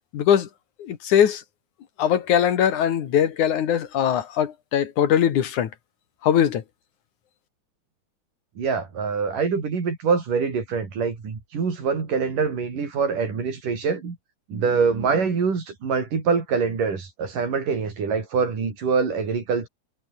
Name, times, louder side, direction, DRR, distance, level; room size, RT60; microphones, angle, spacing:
voice 1, 0.1-0.5 0.8-1.4 2.0-5.7 6.2-6.6, left 9 dB, 70° left, 3.2 m, -21 dB
voice 2, 8.6-14.2 14.5-19.7, right 5 dB, 80° right, 6.2 m, -24 dB
omnidirectional pair, 3.7 m